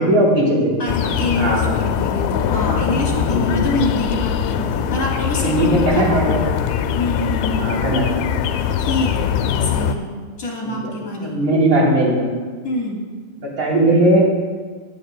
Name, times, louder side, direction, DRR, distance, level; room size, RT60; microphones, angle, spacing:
voice 1, 0.0-0.8 1.4-1.8 3.3-3.6 5.4-6.4 7.6-8.0 10.6-10.9 11.2-12.3 13.6-14.2, right 1 dB, 30° right, -4 dB, 3.6 m, -18 dB
voice 2, 0.8-6.3 6.9-7.8 8.8-10.1 10.4-11.4 12.6-13.1, left 2 dB, 30° left, -4 dB, 2.6 m, -26 dB
sound 1, 0.9-10.0, left 8 dB, 85° left, 2.4 m, -22 dB
22.5 x 9.1 x 2.2 m, 1.5 s
omnidirectional pair, 4.4 m